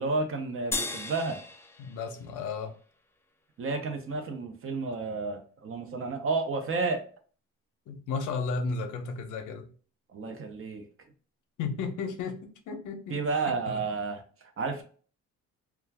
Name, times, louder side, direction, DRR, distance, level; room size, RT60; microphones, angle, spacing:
voice 1, 0.0-1.4 3.6-7.1 10.1-10.9 13.1-14.8, right 3 dB, 45° right, 0.7 m, -31 dB
sound 1, 0.7-3.3, left 3 dB, 10° left, 0.3 m, -37 dB
voice 2, 1.8-2.7 7.9-9.7 11.6-13.2 13.5-13.8, left 4 dB, 85° left, 0.6 m, -34 dB
2.4 x 2.3 x 3.2 m
cardioid pair, 90°, 30 cm